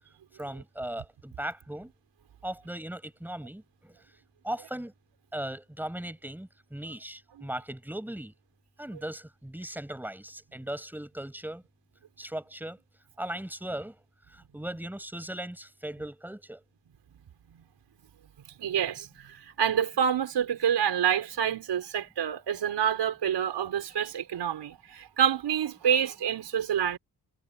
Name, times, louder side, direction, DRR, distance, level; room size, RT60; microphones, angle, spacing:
voice 1, 0.4-1.9 2.4-4.0 4.4-4.9 5.3-8.3 8.8-11.6 12.2-12.8 13.2-14.0 14.3-16.6, right 1 dB, 5° right, 5.5 m, -38 dB
voice 2, 18.5-27.0, right 8 dB, 90° right, 5.4 m, -28 dB
wide cardioid pair, 140°, 40 cm